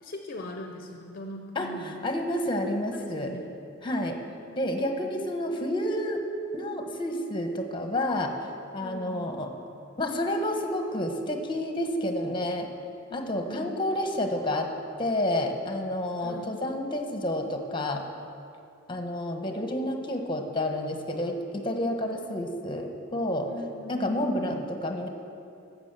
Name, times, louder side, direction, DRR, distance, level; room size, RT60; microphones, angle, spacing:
voice 1, 0.0-2.1 2.9-3.5 4.5-4.6 5.0-5.3 8.8-9.3 13.1-13.8 16.2-16.6 23.5-24.6, left 1 dB, 50° left, 4 dB, 0.7 m, -41 dB
voice 2, 1.5-3.3 3.8-4.2 4.5-6.2 6.5-8.3 8.7-9.5 10.0-12.7 13.1-14.7 15.0-18.0 18.9-23.5 23.9-25.1, left 1 dB, 25° left, 4 dB, 1.1 m, -29 dB
12.5 x 7.3 x 7.4 m, 2.6 s
head